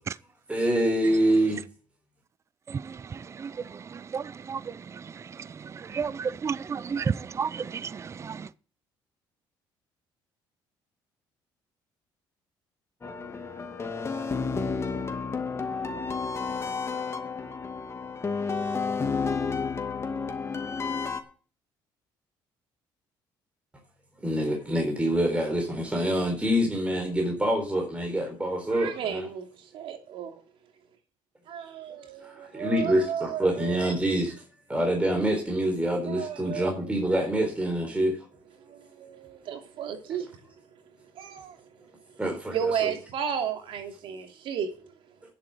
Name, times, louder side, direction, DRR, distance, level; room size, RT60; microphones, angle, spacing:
voice 1, 0.5-1.6 24.2-29.3 32.2-34.3 34.7-38.2 42.2-42.6 42.8-42.9, right 1 dB, 15° right, 4.1 m, -26 dB
voice 2, 5.9-7.6 8.3-8.4, right 6 dB, 30° right, 0.5 m, -29 dB
sound 1, 13.0-21.2, left 5 dB, 30° left, 2.3 m, -31 dB
voice 3, 28.7-30.4 31.5-33.8 36.0-37.0 38.6-40.3 41.1-41.6 42.5-44.7, right 8 dB, 70° right, 2.9 m, -34 dB
10.5 x 7.9 x 7.9 m
supercardioid pair, 85°, 9 cm